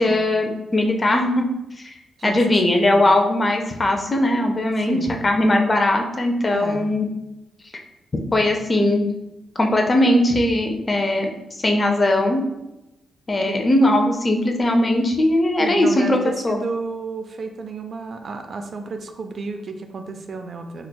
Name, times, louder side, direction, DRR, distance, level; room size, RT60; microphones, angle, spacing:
voice 1, 0.0-1.4 1.8-1.9 2.2-7.1 8.3-9.1 9.6-11.3 11.6-12.4 13.3-16.2 16.4-16.6, left 1 dB, 30° left, 3 dB, 0.4 m, -19 dB
voice 2, 4.8-5.3 6.5-7.0 13.5-13.7 15.6-20.9, right 4 dB, 50° right, 6 dB, 0.3 m, -32 dB
4.1 x 2.2 x 2.2 m, 0.96 s
cardioid pair, 100°, 0 cm